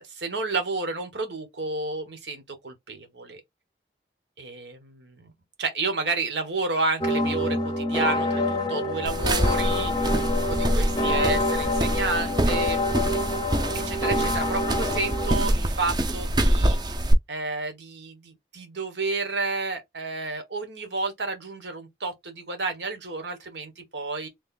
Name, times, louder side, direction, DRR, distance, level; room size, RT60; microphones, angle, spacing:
voice 1, 0.1-3.4 4.4-5.3 5.6-12.8 13.7-16.8 17.3-24.3, right 3 dB, 90° right, 1.2 m, -31 dB
sound 1, 7.0-15.4, left 1 dB, 25° left, 0.6 m, -27 dB
sound 2, 9.1-17.1, right 1 dB, 25° right, 0.4 m, -26 dB
3.2 x 2.4 x 3.7 m
head